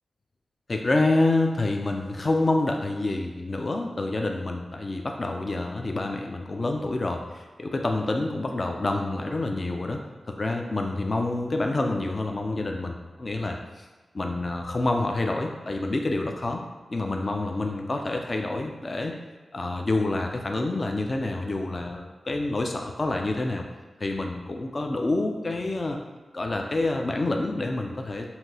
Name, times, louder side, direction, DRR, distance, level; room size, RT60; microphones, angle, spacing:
voice 1, 0.7-10.0 10.3-13.9 14.1-16.6 16.9-19.1 19.5-23.6 24.0-26.0 26.3-28.3, left 2 dB, 45° left, 2 dB, 0.4 m, -27 dB
5.7 x 2.7 x 2.8 m, 1.2 s
cardioid pair, 55°, 0 cm